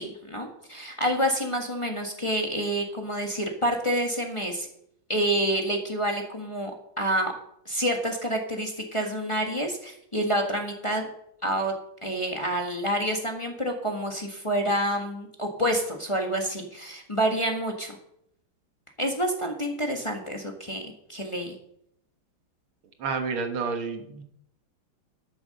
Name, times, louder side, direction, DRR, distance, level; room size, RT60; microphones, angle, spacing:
voice 1, 0.0-4.7 5.1-6.7 7.0-7.3 7.6-11.1 11.4-11.7 12.0-18.0 19.0-21.6, right 1 dB, 15° left, 2 dB, 1.4 m, -28 dB
voice 2, 23.0-24.2, right 4 dB, 85° right, 6 dB, 2.2 m, -29 dB
12.5 x 7.2 x 6.6 m, 0.74 s
omnidirectional pair, 2.2 m